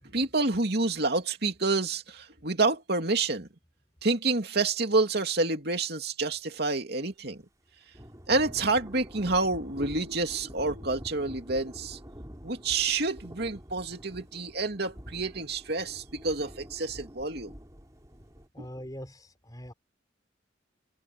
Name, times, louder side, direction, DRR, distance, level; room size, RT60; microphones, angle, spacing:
voice 1, 0.1-3.5 4.0-7.4 8.3-12.0 12.4-17.5 18.6-18.7, right 3 dB, 55° right, 2.9 m, -28 dB
Thunder / Rain, 7.9-18.5, equal, 15° right, 5.1 m, -47 dB
voice 2, 18.5-19.7, equal, 20° left, 4.5 m, -43 dB
head